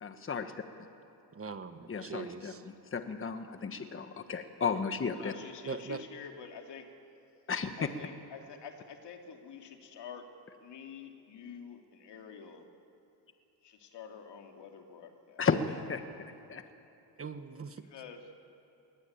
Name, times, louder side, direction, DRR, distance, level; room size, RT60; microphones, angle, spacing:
voice 1, 0.0-0.5 1.9-5.3 7.5-7.7 15.4-16.0 16.5-16.6, left 5 dB, 30° left, 8 dB, 1.4 m, -33 dB
voice 2, 1.3-2.6 5.6-6.0 17.2-17.9, right 5 dB, 30° right, 9 dB, 1.3 m, -41 dB
voice 3, 5.2-7.0 7.8-10.3 10.6-12.7 13.6-15.5 17.8-18.4, left 6 dB, 70° left, 3 dB, 2.8 m, -48 dB
22.0 x 19.5 x 8.8 m, 2.9 s
cardioid pair, 105°, 44 cm